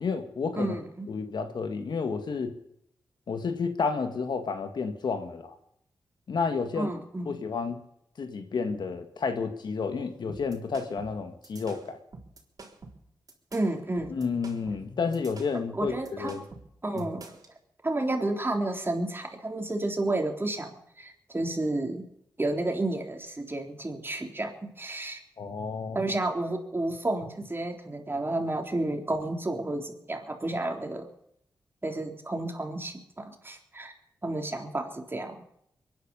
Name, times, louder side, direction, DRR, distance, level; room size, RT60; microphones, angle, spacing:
voice 1, 0.0-0.8 1.1-2.5 3.3-5.5 6.3-6.9 7.3-7.8 8.2-12.0 14.1-16.4 17.0-17.1 25.4-26.0, left 5 dB, 70° left, 7 dB, 2.1 m, -31 dB
voice 2, 0.6-1.1 6.8-7.4 13.5-14.2 15.7-16.4 16.8-17.2 17.8-22.0 22.4-25.2 25.9-31.1 31.8-33.9 34.2-35.4, right 2 dB, 30° right, 3 dB, 3.7 m, -31 dB
sound 1, 10.3-17.5, right 3 dB, 50° right, 3.7 m, -47 dB
23.0 x 10.5 x 5.5 m, 0.73 s
cardioid pair, 50°, 8 cm